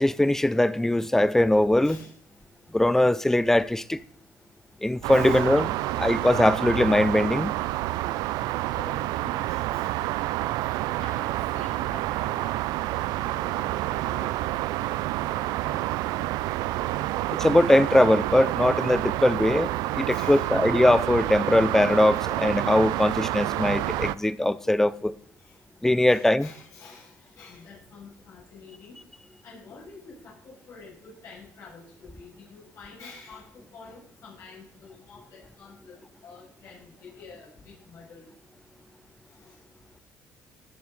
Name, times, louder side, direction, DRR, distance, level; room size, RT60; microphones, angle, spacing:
voice 1, 0.0-2.0 2.7-4.0 4.8-5.7 6.0-7.5 17.4-19.7 20.0-25.1 25.8-26.5, left 1 dB, 5° left, 0.6 m, -21 dB
voice 2, 1.8-2.1 5.1-5.6 8.4-9.9 11.0-12.7 13.1-16.3 19.2-19.4 19.9-20.9 25.4-25.6 26.1-29.0 29.4-36.0 36.2-38.3 39.4-39.6, left 4 dB, 60° left, 6.8 m, -48 dB
sound 1, 5.0-24.2, right 16 dB, 85° right, 0.5 m, -28 dB
19.5 x 7.5 x 4.1 m
cardioid pair, 105°, 7 cm